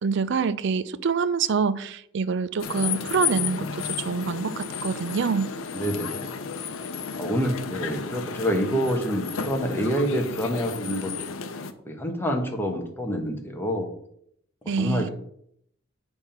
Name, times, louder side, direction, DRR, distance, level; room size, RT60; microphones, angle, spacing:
voice 1, 0.0-5.5 14.7-15.1, right 5 dB, 65° right, 0.4 m, -26 dB
sound 1, 2.6-11.7, left 6 dB, 85° left, 0.6 m, -33 dB
voice 2, 5.7-6.4 7.2-11.5 11.8-13.9 14.8-15.1, equal, 10° left, 1.2 m, -27 dB
8.1 x 3.5 x 5.7 m
head